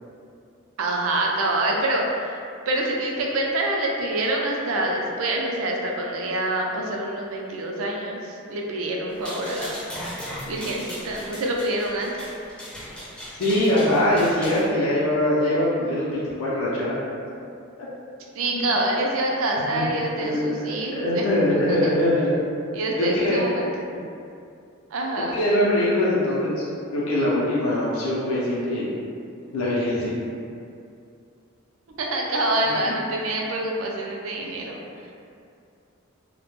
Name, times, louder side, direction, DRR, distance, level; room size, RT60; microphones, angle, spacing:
voice 1, 0.8-9.8 10.1-12.3 18.3-21.2 21.5-21.9 22.7-23.7 24.9-25.4 32.0-34.8, right 1 dB, 70° right, -1 dB, 0.4 m, -26 dB
sound 1, 9.1-14.7, equal, 5° left, 0.4 m, -37 dB
voice 2, 13.4-17.0 17.8-17.9 18.5-18.7 19.7-19.8 20.2-22.3 23.0-23.4 25.3-26.6 26.9-28.9 29.5-30.1 34.4-34.9, left 1 dB, 75° left, -7 dB, 0.5 m, -23 dB
2.1 x 2.1 x 2.9 m, 2.4 s
head